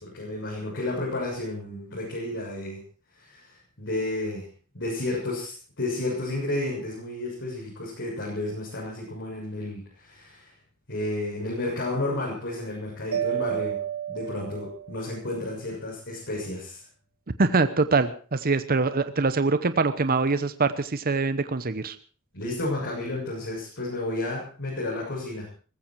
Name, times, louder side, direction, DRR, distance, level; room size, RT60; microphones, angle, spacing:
voice 1, 0.0-2.8 3.1-4.5 4.7-10.5 10.9-13.8 14.1-16.8 22.3-25.5, left 2 dB, 60° left, -4 dB, 7.0 m, -32 dB
Mallet percussion, 13.1-15.2, right 10 dB, 90° right, 1.7 m, -31 dB
voice 2, 17.4-22.0, right 3 dB, 45° right, 11 dB, 0.9 m, -24 dB
19.5 x 15.0 x 4.6 m, 0.39 s
head